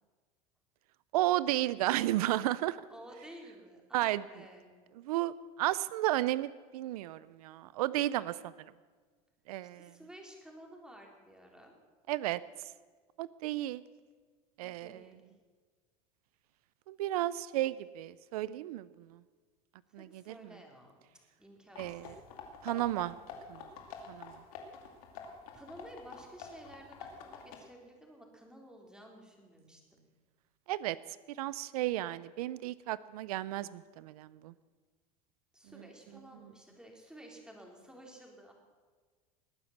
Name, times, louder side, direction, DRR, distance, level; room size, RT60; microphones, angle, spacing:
voice 1, 1.1-2.8 3.9-4.2 5.1-8.5 9.5-9.9 12.1-12.4 13.2-13.8 14.6-15.0 16.9-19.1 19.9-20.3 21.8-22.1 22.6-23.2 23.5-23.6 24.1-24.3 30.7-31.0 31.4-34.5, right 15 dB, 90° right, 18 dB, 0.5 m, -33 dB
voice 2, 2.9-4.8 9.6-11.7 14.6-15.2 20.0-21.0 21.4-22.2 25.5-30.0 35.5-38.5, right 1 dB, 5° right, 1 dB, 3.7 m, -53 dB
sound 1, 21.7-27.6, left 5 dB, 80° left, 2.6 m, -48 dB
20.0 x 9.6 x 7.3 m, 1.5 s
supercardioid pair, 110°, 19 cm